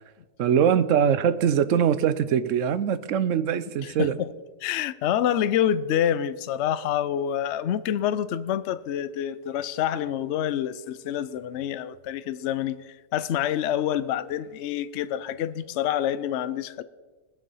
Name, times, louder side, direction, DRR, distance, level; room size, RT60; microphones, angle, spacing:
voice 1, 0.4-4.2, right 8 dB, 70° right, 1.0 m, -22 dB
voice 2, 3.8-4.3 4.6-16.8, left 10 dB, 65° left, 0.8 m, -27 dB
20.5 x 7.1 x 5.5 m
omnidirectional pair, 1.4 m